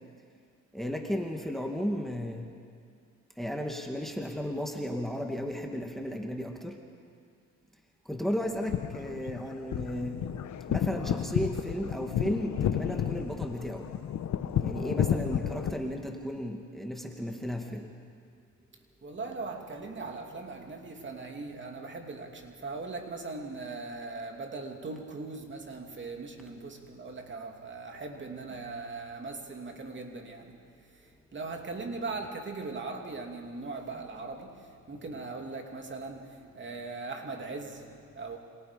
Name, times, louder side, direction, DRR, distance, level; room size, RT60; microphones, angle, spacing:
voice 1, 0.7-2.5 3.4-6.8 8.1-10.3 10.7-13.9 14.6-17.9, equal, ahead, 2.3 m, -34 dB
sound 1, 8.5-15.7, left 9 dB, 65° left, 1.2 m, -31 dB
voice 2, 19.0-38.4, right 3 dB, 40° right, 2.9 m, -40 dB
27.5 x 26.5 x 5.3 m
cardioid pair, 90°, 30 cm